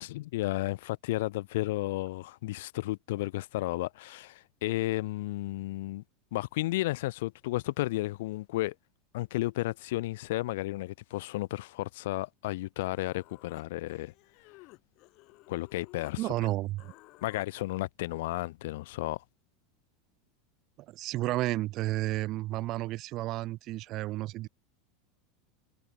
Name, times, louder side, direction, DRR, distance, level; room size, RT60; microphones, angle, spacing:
voice 1, 0.0-6.0 6.3-8.7 9.1-14.1 15.5-16.3 17.2-19.2, left 18 dB, 70° left, 0.6 m, -33 dB
Human voice, 12.8-16.2 16.4-17.5, left 22 dB, 55° left, 3.8 m, -55 dB
voice 2, 16.2-16.9 20.9-24.5, right 17 dB, 50° right, 1.5 m, -32 dB
hypercardioid pair, 90°, 0 cm